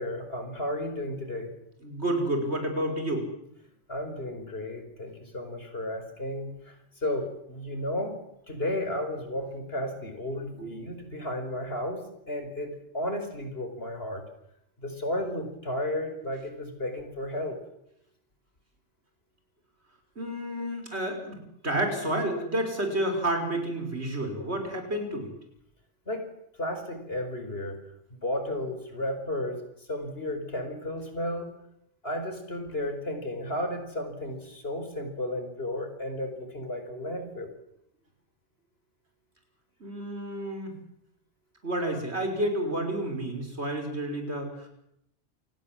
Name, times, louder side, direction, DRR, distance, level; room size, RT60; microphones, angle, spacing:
voice 1, 0.0-1.5 3.9-6.8 7.0-12.0 12.3-14.2 14.8-17.6 26.1-26.3 26.6-27.8 28.1-31.5 32.0-37.5, left 1 dB, 55° left, 7 dB, 5.2 m, -33 dB
voice 2, 1.8-3.3 10.5-10.7 20.2-25.3 39.8-40.8 41.6-44.7, right 1 dB, 65° right, 5 dB, 6.0 m, -30 dB
28.0 x 19.5 x 7.7 m, 0.78 s
omnidirectional pair, 1.2 m